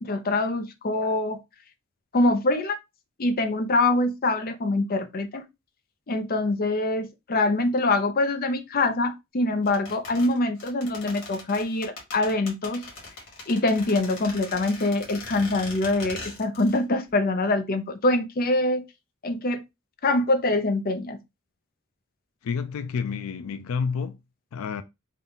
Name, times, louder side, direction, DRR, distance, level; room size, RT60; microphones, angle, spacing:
voice 1, 0.0-1.4 2.1-2.8 3.2-5.5 6.1-12.8 13.5-18.8 19.2-19.6 20.0-21.2, left 2 dB, 45° left, 0.6 m, -24 dB
sound 1, 9.7-16.8 17.1-17.2, left 3 dB, 60° left, 1.8 m, -40 dB
voice 2, 22.4-24.2 24.5-24.8, left 5 dB, 85° left, 0.4 m, -29 dB
3.7 x 2.3 x 3.9 m
head